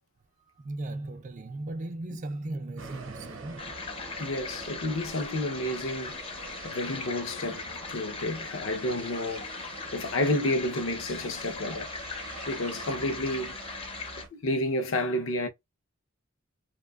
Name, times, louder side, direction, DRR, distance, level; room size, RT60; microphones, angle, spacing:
voice 1, 0.6-3.7, right 2 dB, 35° right, 0.3 m, -37 dB
sound 1, 2.8-14.3, right 3 dB, 65° right, 0.7 m, -44 dB
sound 2, 3.6-14.2, left 5 dB, 25° left, 0.5 m, -40 dB
voice 2, 4.2-6.2 6.6-12.0 12.5-13.6 14.3-15.5, left 1 dB, 70° left, 0.6 m, -30 dB
2.7 x 2.2 x 2.2 m
head